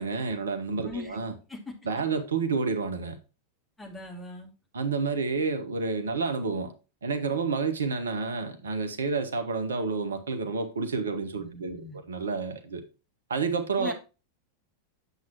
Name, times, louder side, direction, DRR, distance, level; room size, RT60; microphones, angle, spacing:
voice 1, 0.0-1.3 1.9-3.2 4.7-6.7 7.0-12.8 13.3-13.9, right 4 dB, 70° right, 1.0 m, -29 dB
voice 2, 0.8-1.2 1.5-1.7 3.8-4.5 11.4-12.0 13.8-13.9, left 2 dB, 10° left, 2.5 m, -40 dB
8.1 x 7.4 x 2.9 m
figure-of-eight pair, 90°, 0 cm